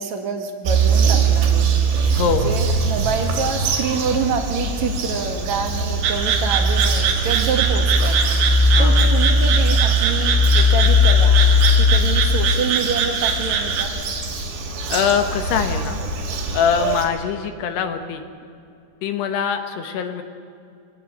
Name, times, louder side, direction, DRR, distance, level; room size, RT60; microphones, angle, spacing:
voice 1, 0.0-1.7 2.2-13.9, right 5 dB, 50° right, 5 dB, 2.5 m, -27 dB
Bird vocalization bird call bird song, 0.6-17.1, equal, 70° right, 5.0 m, -19 dB
voice 2, 2.1-2.5 8.7-9.1 14.9-16.0 16.5-18.2 19.0-20.2, left 7 dB, 70° left, 7 dB, 3.1 m, -23 dB
sound 1, 6.0-13.8, right 7 dB, 90° right, 4.4 m, -23 dB
23.0 x 18.0 x 9.0 m, 2.5 s
omnidirectional pair, 5.2 m